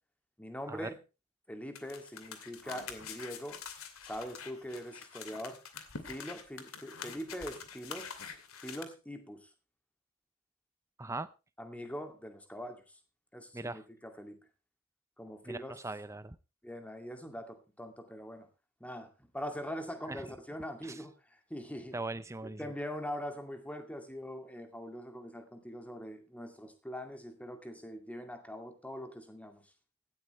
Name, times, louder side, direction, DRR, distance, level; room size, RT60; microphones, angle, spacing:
voice 1, 0.4-1.0 1.5-3.6 4.0-5.6 6.0-8.1 8.6-9.5 11.6-12.8 13.3-14.4 15.2-15.8 16.6-18.5 18.8-22.0 22.4-29.6, equal, 5° left, 6 dB, 2.3 m, -42 dB
sound 1, 1.7-8.8, left 6 dB, 65° left, 2.5 m, -46 dB
voice 2, 11.0-11.3 13.5-13.8 15.5-16.4 20.1-20.2 20.8-21.0 21.9-22.7, right 2 dB, 15° right, 13 dB, 0.6 m, -40 dB
17.0 x 12.5 x 3.2 m, 0.30 s
head